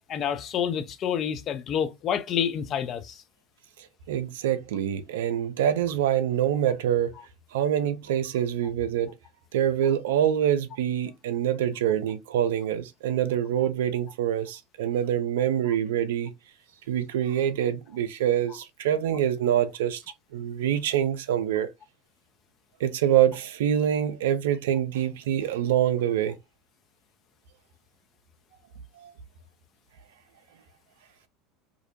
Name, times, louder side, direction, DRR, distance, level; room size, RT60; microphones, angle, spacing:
voice 1, 0.1-3.2, left 8 dB, 40° left, 0.4 m, -28 dB
voice 2, 3.8-7.1 7.5-9.1 9.5-16.3 16.9-20.0 20.3-21.7 22.8-26.4 29.0-29.1, right 10 dB, 65° right, 0.4 m, -25 dB
2.5 x 2.0 x 2.6 m
figure-of-eight pair, 75°, 0 cm